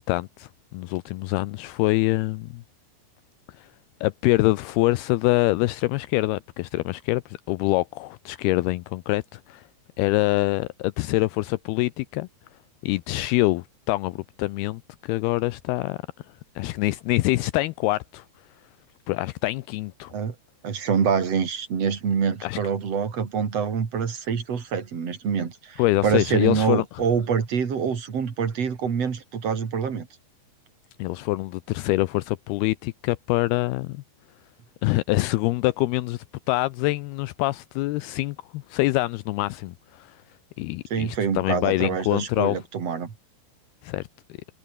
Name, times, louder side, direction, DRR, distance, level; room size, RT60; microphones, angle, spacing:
voice 1, 0.0-2.6 3.6-3.7 4.0-9.6 10.0-12.3 12.8-16.0 16.6-18.2 19.1-20.1 22.4-22.6 25.8-26.8 31.0-34.0 34.8-40.2 40.6-42.6 43.8-44.1, left 19 dB, 85° left, 2.3 m, -25 dB
voice 2, 20.6-30.1 40.9-43.1, right 6 dB, 40° right, 3.4 m, -26 dB
omnidirectional pair, 5.1 m